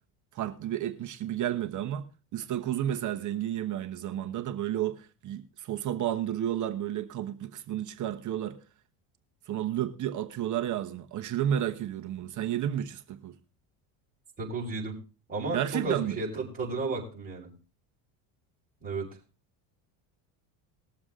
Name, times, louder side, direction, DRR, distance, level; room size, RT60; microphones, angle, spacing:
voice 1, 0.3-2.1 2.3-8.6 9.5-13.4 15.5-16.2, right 11 dB, 45° right, 1.1 m, -31 dB
voice 2, 14.4-14.9 15.3-17.5 18.8-19.1, right 3 dB, 20° right, 5.5 m, -33 dB
20.5 x 7.2 x 3.7 m
cardioid pair, 130°, 43 cm